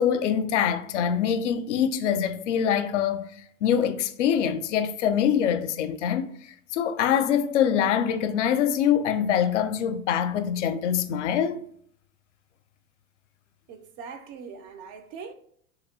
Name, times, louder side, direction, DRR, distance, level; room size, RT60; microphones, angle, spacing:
voice 1, 0.0-3.3 3.6-11.6, left 8 dB, 55° left, 0.5 m, -24 dB
voice 2, 13.7-15.3, right 5 dB, 35° right, 0.4 m, -41 dB
4.0 x 2.9 x 2.6 m
figure-of-eight pair, 90°, 43 cm